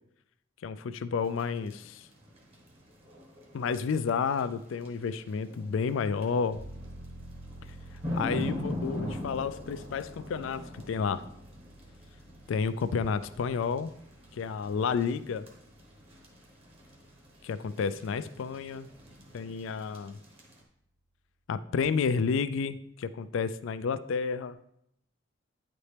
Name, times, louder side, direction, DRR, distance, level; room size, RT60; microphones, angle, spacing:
voice 1, 0.6-2.1 3.5-6.6 8.1-11.2 12.5-13.9 14.3-15.5 17.4-18.9 19.3-20.2 21.5-24.6, left 5 dB, 75° left, 14 dB, 0.3 m, -31 dB
sound 1, 1.2-20.6, left 1 dB, 30° right, 1.1 m, -42 dB
sound 2, 6.5-19.0 19.4-19.5, right 1 dB, 55° right, 1.3 m, -51 dB
9.2 x 4.2 x 3.3 m, 0.73 s
head